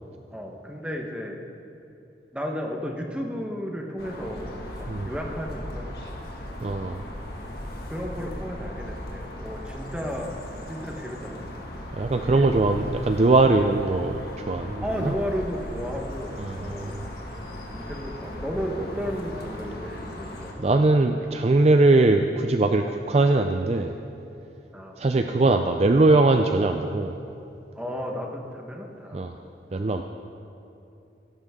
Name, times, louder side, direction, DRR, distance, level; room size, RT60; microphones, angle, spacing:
voice 1, 0.3-1.3 2.3-4.5 4.8-6.2 7.9-10.3 10.7-11.4 12.3-12.5 14.8-16.3 16.6-16.9 17.7-20.6 24.7-24.9 27.7-29.4, equal, 5° right, 0 dB, 1.2 m, -33 dB
sound 1, 4.0-20.5, left 1 dB, 55° left, 1.9 m, -37 dB
voice 2, 6.6-7.0 11.9-15.1 16.4-17.0 20.6-23.9 25.0-27.2 29.1-29.3 29.7-30.0, right 2 dB, 35° right, 6 dB, 0.4 m, -21 dB
17.0 x 14.0 x 3.7 m, 2.8 s
head